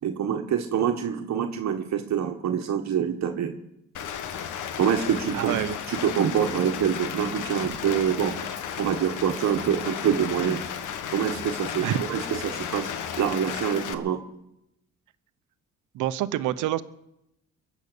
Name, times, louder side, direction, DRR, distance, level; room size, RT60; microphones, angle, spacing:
voice 1, 0.0-3.6 4.8-8.4 8.8-10.6 11.1-14.2, right 8 dB, 65° right, 4 dB, 1.4 m, -26 dB
Rain, 3.9-13.9, left 8 dB, 80° left, 1.2 m, -34 dB
voice 2, 5.3-5.8 11.8-12.0 15.9-16.8, right 13 dB, 85° right, 14 dB, 0.9 m, -26 dB
22.5 x 8.3 x 6.8 m, 0.83 s
cardioid pair, 90°, 30 cm